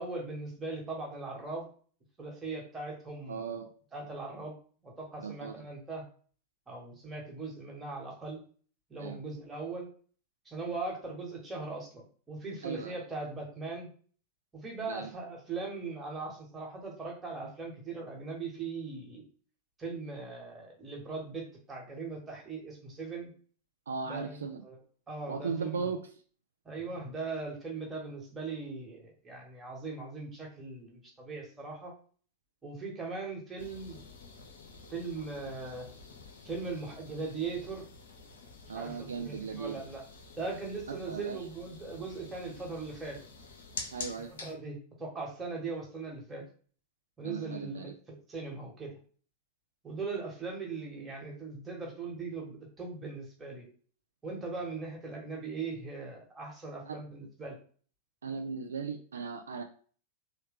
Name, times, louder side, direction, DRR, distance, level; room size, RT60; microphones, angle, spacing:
voice 1, 0.0-1.7 2.2-3.6 3.9-4.5 4.8-6.0 6.7-8.4 8.9-9.9 10.4-13.9 14.5-19.2 19.8-23.3 24.0-24.8 25.1-25.9 26.6-31.9 32.6-34.1 34.9-35.9 36.4-37.8 38.7-40.0 40.4-43.2 44.3-46.4 47.2-49.0 49.8-53.7 54.2-57.6, right 3 dB, 15° right, -1 dB, 1.3 m, -39 dB
voice 2, 3.3-3.7 5.2-5.6 9.0-9.2 12.6-13.0 14.9-15.1 23.9-24.6 25.3-26.0 38.7-39.8 40.9-41.4 43.9-44.3 47.2-47.8 56.9-57.0 58.2-59.6, right 5 dB, 70° right, 4 dB, 0.4 m, -37 dB
sound 1, 33.6-44.5, left 4 dB, 60° left, 0.6 m, -48 dB
3.2 x 2.2 x 3.5 m, 0.43 s
figure-of-eight pair, 90°, 0 cm